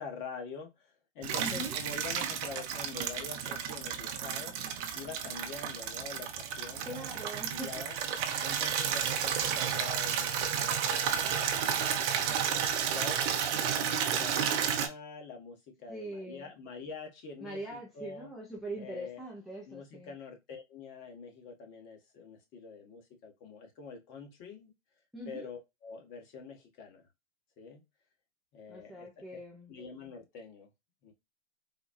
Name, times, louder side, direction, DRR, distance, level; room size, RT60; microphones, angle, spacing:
voice 1, 0.0-4.6 4.9-7.0 7.5-7.9 8.4-11.1 11.6-12.7 12.9-13.2 13.5-18.3 18.8-19.2 19.6-24.7 25.3-27.0 27.6-27.8 28.5-29.2 29.7-30.7 31.0-31.1, left 5 dB, 35° left, 1.2 m, -46 dB
Water tap faucet / Liquid, 1.2-14.9, right 8 dB, 35° right, 0.7 m, -32 dB
voice 2, 1.4-1.8 6.8-7.8 15.9-16.5 17.4-20.2 25.1-25.5 28.7-29.7, right 1 dB, ahead, 0.6 m, -42 dB
4.1 x 2.2 x 2.3 m
hypercardioid pair, 120°, 35 cm